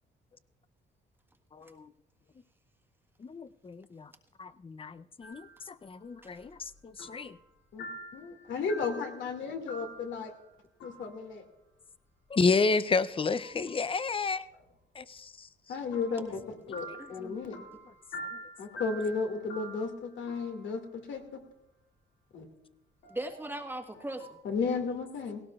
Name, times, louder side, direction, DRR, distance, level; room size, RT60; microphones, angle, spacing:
voice 1, 1.5-1.9 3.2-4.1 4.4-7.4 12.3-14.5 15.0-15.5 18.3-18.4, left 4 dB, 25° left, 15 dB, 0.6 m, -31 dB
sound 1, 5.2-5.6 6.1-7.5 7.8-10.5 10.8-11.3 13.2-14.0 15.9-21.2 23.0-24.4, equal, 90° left, 2.4 m, -47 dB
voice 2, 8.1-10.3 10.8-11.4 15.7-16.4 16.7-17.6 18.6-21.4 22.3-22.5 24.4-25.4, left 4 dB, 70° left, 4 dB, 2.2 m, -34 dB
voice 3, 17.0-17.8 23.1-24.4, right 1 dB, 10° right, 4 dB, 1.4 m, -40 dB
17.5 x 17.5 x 2.4 m, 0.89 s
cardioid pair, 90°, 20 cm